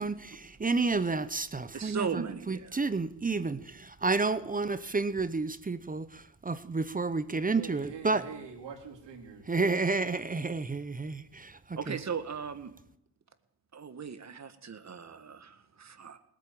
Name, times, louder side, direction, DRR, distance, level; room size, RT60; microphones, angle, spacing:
voice 1, 0.0-8.2 9.5-12.0, right 3 dB, 20° right, 0.8 m, -31 dB
voice 2, 1.7-2.8 11.7-12.7 13.7-16.2, right 6 dB, 35° right, 1.7 m, -37 dB
voice 3, 7.5-9.6, right 6 dB, 60° right, 4.2 m, -44 dB
19.0 x 8.9 x 8.5 m
cardioid pair, 90°, 48 cm